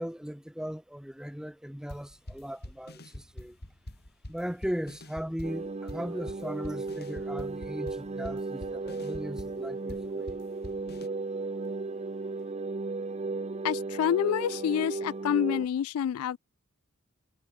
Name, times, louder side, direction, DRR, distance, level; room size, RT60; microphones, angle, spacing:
voice 1, 0.0-3.6 4.3-10.4, equal, 5° right, 1.2 m, -38 dB
sound 1, 1.9-11.1, left 1 dB, 50° left, 3.8 m, -45 dB
sound 2, 5.4-15.7, right 3 dB, 30° right, 0.6 m, -35 dB
voice 2, 13.6-16.4, left 9 dB, 75° left, 0.3 m, -28 dB
head